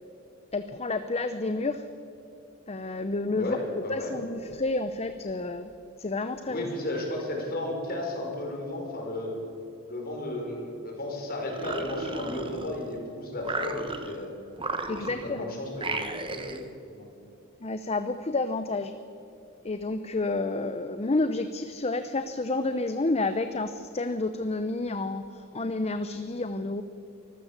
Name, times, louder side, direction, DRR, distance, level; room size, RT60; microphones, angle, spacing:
voice 1, 0.5-1.9 2.7-3.6 3.9-5.7 6.0-6.7 14.9-15.5 17.6-19.0 19.6-26.8, left 2 dB, 30° left, 10 dB, 0.7 m, -30 dB
voice 2, 3.4-4.1 6.5-9.4 9.9-14.3 14.9-17.1, left 1 dB, 45° left, 0 dB, 5.1 m, -34 dB
sound 1, 11.4-13.0 13.4-14.2 14.6-15.4 15.8-16.7, right 3 dB, 25° right, 1.3 m, -35 dB
24.5 x 15.0 x 7.3 m, 2.8 s
head